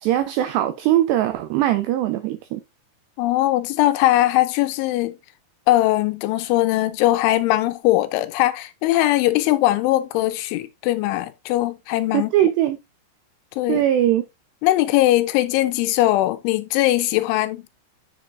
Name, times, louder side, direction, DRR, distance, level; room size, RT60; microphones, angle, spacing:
voice 1, 0.0-2.6 12.1-12.8 13.7-14.3, right 12 dB, 90° right, 2.4 m, -20 dB
voice 2, 3.2-5.1 5.7-12.3 13.6-13.8 14.6-17.6, left 15 dB, 80° left, 3.0 m, -20 dB
8.2 x 7.4 x 2.6 m
omnidirectional pair, 5.6 m